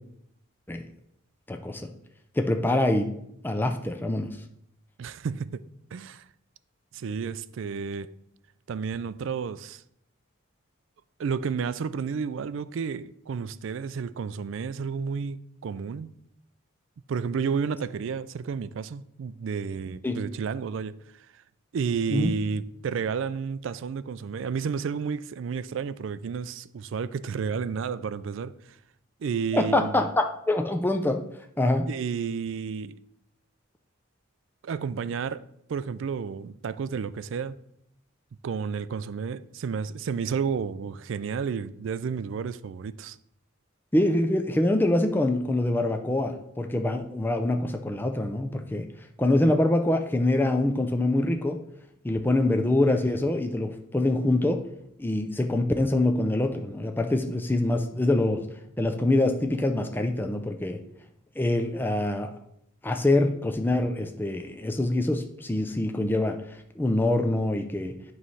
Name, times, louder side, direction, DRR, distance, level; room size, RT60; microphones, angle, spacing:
voice 1, 1.5-1.9 2.4-3.1 3.4-4.3 20.0-20.2 22.1-22.3 29.5-31.2 31.6-31.9 43.9-48.9 49.2-51.6 52.0-54.6 55.0-58.5 58.8-60.8 61.4-62.3 62.8-67.9, left 1 dB, 10° left, 0.4 m, -25 dB
voice 2, 5.0-5.6 5.9-6.2 6.9-8.1 8.7-9.8 11.2-16.1 17.1-21.3 21.7-28.8 29.2-29.9 31.9-33.0 34.6-37.6 38.4-43.2, right 6 dB, 65° right, 0.3 m, -31 dB
8.9 x 3.2 x 5.5 m
head